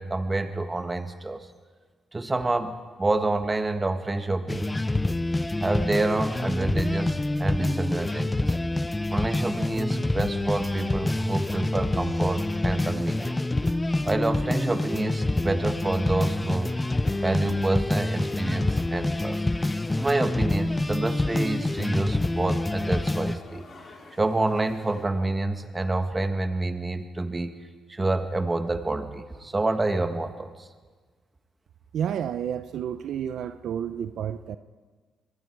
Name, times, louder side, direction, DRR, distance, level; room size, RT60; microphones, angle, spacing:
voice 1, 0.0-1.5 2.1-4.7 5.6-8.6 9.1-13.4 14.0-16.7 17.2-19.4 19.9-23.6 24.2-27.5 27.9-30.7, right 2 dB, 20° right, 7 dB, 1.7 m, -28 dB
sound 1, 4.5-23.4, left 2 dB, 15° left, 0.7 m, -27 dB
sound 2, 13.6-19.3, right 5 dB, 50° right, 1.8 m, -53 dB
sound 3, 16.0-25.0, left 3 dB, 45° left, 3.7 m, -50 dB
voice 2, 31.9-34.6, right 9 dB, 70° right, 11 dB, 0.7 m, -30 dB
25.5 x 21.5 x 4.8 m, 1.5 s
cardioid pair, 90°, 0 cm